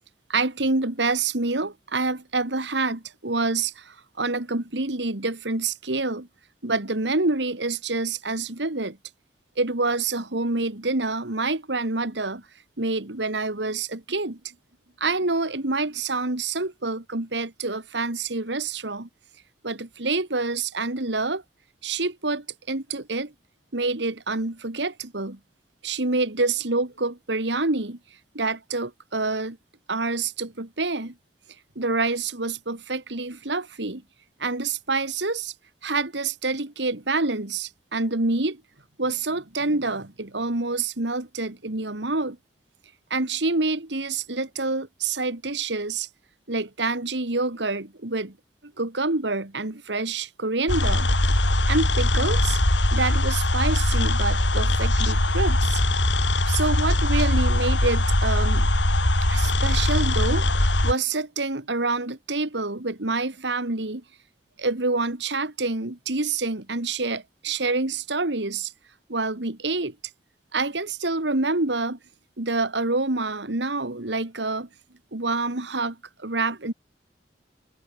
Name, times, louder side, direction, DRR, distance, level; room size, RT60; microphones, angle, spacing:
voice 1, 0.3-6.3 6.6-9.0 9.6-12.4 12.8-14.4 15.0-19.1 19.6-21.4 21.8-23.3 23.7-25.4 25.8-28.0 28.3-29.6 29.9-31.1 31.8-34.0 34.4-35.5 35.8-38.6 39.0-42.4 43.1-46.1 46.5-48.4 48.8-51.1 51.7-52.6 52.9-55.8 56.5-58.7 59.3-60.4 60.8-64.0 64.6-68.7 69.1-70.0 70.5-72.0 72.4-74.7 75.1-76.7, right 3 dB, 75° right, 2.2 m, -27 dB
sound 1, 50.7-60.9, left 1 dB, 80° left, 4.9 m, -21 dB
head